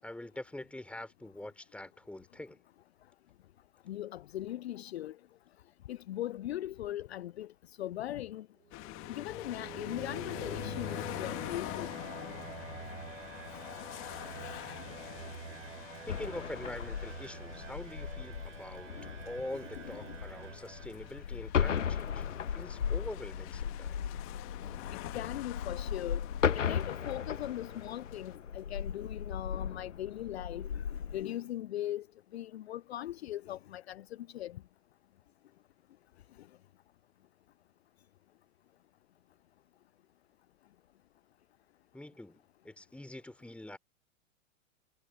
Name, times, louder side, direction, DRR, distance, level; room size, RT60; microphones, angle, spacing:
voice 1, 0.0-2.6 16.1-18.9 19.2-24.0 41.9-43.8, left 1 dB, 5° left, 4.3 m, -44 dB
voice 2, 3.9-5.2 5.9-8.5 9.2-12.0 13.5-13.6 14.4-14.6 19.0-19.1 19.8-20.2 21.9-22.5 24.6-26.3 26.5-32.1 32.3-34.6 36.4-36.5, left 13 dB, 55° left, 0.7 m, -40 dB
sound 1, 8.6-21.5, right 6 dB, 70° right, 2.9 m, -47 dB
sound 2, 8.7-28.4, left 23 dB, 35° left, 2.3 m, -46 dB
sound 3, 16.1-31.2, left 7 dB, 70° left, 1.4 m, -36 dB
figure-of-eight pair, 100°, 38 cm